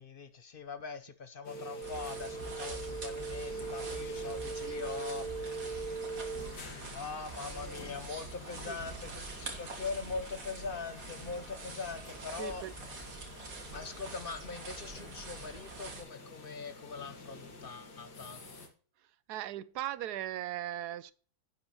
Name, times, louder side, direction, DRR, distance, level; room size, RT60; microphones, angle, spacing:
voice 1, 0.0-5.8 6.9-12.6 13.7-18.4, left 4 dB, 45° left, 0.8 m, -42 dB
sound 1, 1.4-18.7, right 2 dB, 90° left, 2.4 m, -44 dB
sound 2, 1.8-16.0, right 3 dB, 60° right, 2.2 m, -45 dB
voice 2, 12.4-12.7 19.3-21.1, right 13 dB, 80° right, 1.1 m, -38 dB
10.5 x 8.1 x 3.0 m
omnidirectional pair, 1.7 m